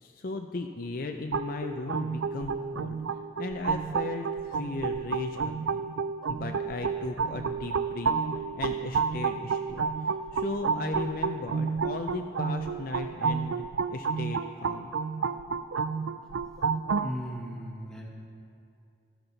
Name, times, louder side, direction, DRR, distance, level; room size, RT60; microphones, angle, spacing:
voice 1, 0.0-3.0 3.4-5.9 6.3-8.1 8.5-9.9 10.3-13.6 13.9-14.9, left 3 dB, 45° left, 4 dB, 0.5 m, -36 dB
sound 1, 1.3-17.1, right 5 dB, 80° right, 0.4 m, -30 dB
voice 2, 17.0-18.1, equal, 5° left, -3 dB, 1.6 m, -37 dB
13.0 x 13.0 x 4.0 m, 2.5 s
head